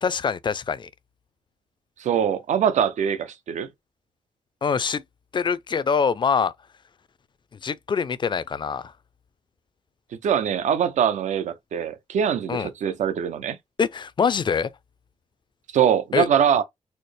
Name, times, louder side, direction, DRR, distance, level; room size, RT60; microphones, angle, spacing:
voice 1, 0.0-0.9 4.6-5.0 5.3-6.5 7.6-8.9 12.5-12.7 13.8-14.7 16.1-16.3, left 6 dB, 40° left, 0.4 m, -24 dB
voice 2, 2.0-3.7 10.2-13.6 15.7-16.6, right 8 dB, 80° right, 0.5 m, -23 dB
4.2 x 2.0 x 3.2 m
cardioid pair, 75°, 12 cm